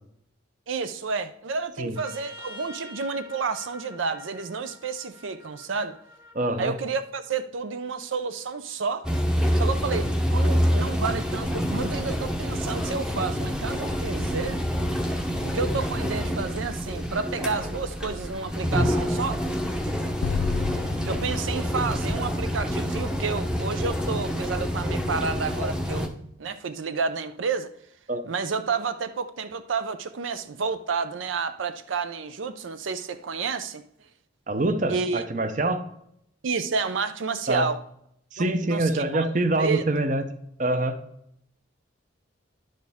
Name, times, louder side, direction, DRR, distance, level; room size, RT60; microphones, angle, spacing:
voice 1, 0.7-6.0 6.6-9.1 9.5-14.6 15.4-19.4 21.0-26.1 26.4-27.7 28.2-33.8 34.9-35.2 36.4-37.8 38.4-39.3 39.6-39.8, right 4 dB, 85° right, 0.5 m, -30 dB
Trumpet, 1.9-6.5, left 2 dB, 20° right, 1.0 m, -46 dB
voice 2, 6.3-6.7 28.1-28.2 34.5-35.8 37.5-37.7 38.3-40.2 40.6-41.0, right 2 dB, 40° right, 0.7 m, -25 dB
sound 1, 9.0-26.1, equal, 5° right, 0.7 m, -27 dB
Explosion, 20.2-23.5, left 6 dB, 85° left, 0.3 m, -32 dB
10.5 x 6.5 x 3.5 m
head